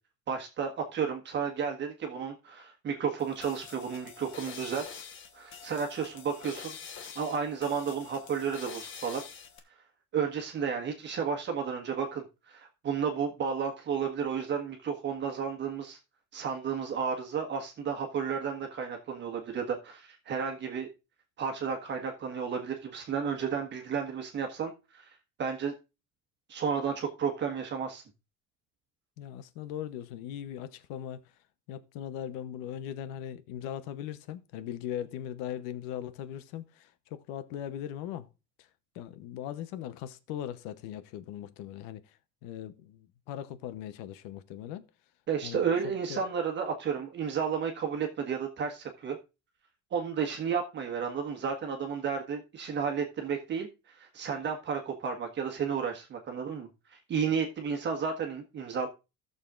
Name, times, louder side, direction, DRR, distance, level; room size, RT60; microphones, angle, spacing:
voice 1, 0.3-5.0 5.3-6.7 7.1-9.2 10.1-16.0 16.3-20.9 21.4-25.0 25.4-25.7 26.5-28.0 45.3-49.2 49.9-58.9, right 6 dB, 35° right, 1.4 m, -32 dB
sound 1, 3.2-9.6, left 7 dB, 35° left, 1.2 m, -46 dB
voice 2, 29.2-31.3 31.7-38.3 38.6-38.7 38.9-44.9 45.4-46.2, left 10 dB, 80° left, 0.9 m, -39 dB
17.0 x 6.8 x 2.5 m
cardioid pair, 165°, 33 cm